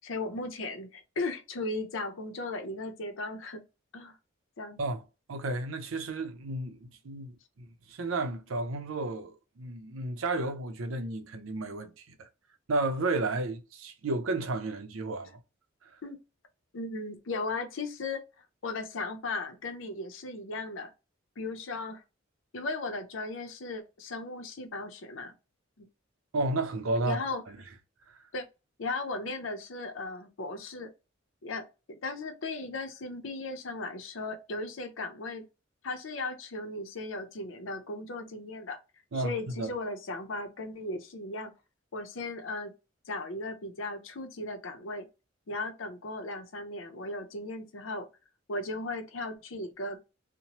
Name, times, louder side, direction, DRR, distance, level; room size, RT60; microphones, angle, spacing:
voice 1, 0.0-3.6 3.9-4.1 4.6-4.8 16.0-16.2 16.7-18.2 18.6-20.9 21.4-22.0 22.5-25.3 25.8-25.9 27.0-27.4 28.3-28.4 28.8-30.9 31.4-35.4 35.8-38.8 39.1-41.5 41.9-42.7 43.1-45.1 45.5-48.1 48.5-50.0, left 2 dB, 70° left, 0.6 m, -36 dB
voice 2, 5.3-12.3 12.7-15.3 26.3-27.2 27.5-27.6 28.1-28.2 39.1-39.7, right 2 dB, 90° right, 0.6 m, -32 dB
2.9 x 2.1 x 2.8 m
head